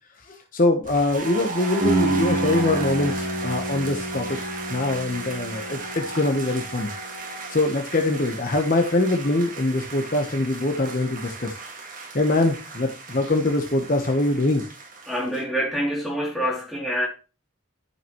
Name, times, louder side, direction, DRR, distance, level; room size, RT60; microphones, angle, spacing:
voice 1, 0.3-4.4 4.7-6.9 7.5-11.6 12.1-14.6, left 2 dB, 40° left, 1.0 m, -23 dB
sound 1, 0.8-15.4, right 3 dB, 40° right, 1.9 m, -36 dB
sound 2, 1.8-7.6, right 2 dB, 65° right, 3.4 m, -29 dB
voice 2, 15.1-17.1, equal, ahead, 2.8 m, -26 dB
12.5 x 5.7 x 3.0 m
head